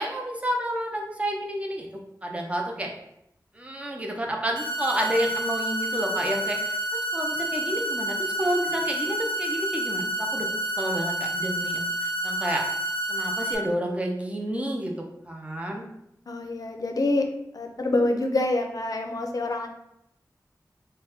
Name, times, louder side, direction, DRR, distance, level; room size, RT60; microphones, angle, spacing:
voice 1, 0.0-1.9 2.2-2.9 3.5-6.8 7.1-10.5 10.8-12.6 13.1-14.9 15.3-15.9, right 1 dB, 20° right, 0 dB, 0.6 m, -30 dB
sound 1, 4.6-13.6, right 1 dB, 90° right, 0.8 m, -29 dB
voice 2, 16.3-17.3 17.5-19.7, left 2 dB, 60° left, 4 dB, 0.5 m, -26 dB
4.0 x 2.2 x 3.4 m, 0.80 s
wide cardioid pair, 85°, 7 cm